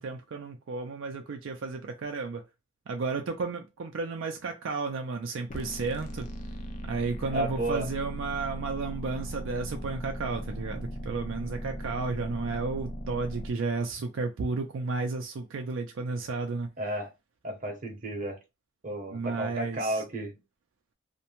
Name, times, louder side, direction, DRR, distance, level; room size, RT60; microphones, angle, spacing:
voice 1, 0.0-2.4 2.9-6.3 6.8-16.7 19.1-20.0, right 4 dB, 70° right, 0.4 m, -33 dB
sound 1, 5.5-13.5, equal, 40° left, 0.4 m, -38 dB
voice 2, 7.3-7.9 16.8-17.1 17.4-18.4 18.8-20.3, right 1 dB, 40° right, 0.7 m, -32 dB
2.5 x 2.1 x 2.9 m
head